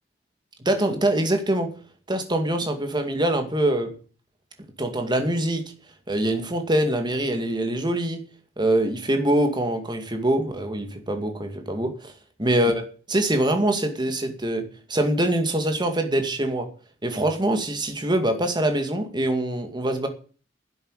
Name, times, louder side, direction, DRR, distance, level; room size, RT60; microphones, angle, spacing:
voice 1, 0.7-1.7 2.1-3.9 4.8-5.6 6.1-8.2 8.6-12.1 12.4-12.8 13.1-16.7 17.0-20.1, right 1 dB, 25° right, 6 dB, 2.2 m, -24 dB
11.5 x 8.1 x 9.0 m, 0.40 s
head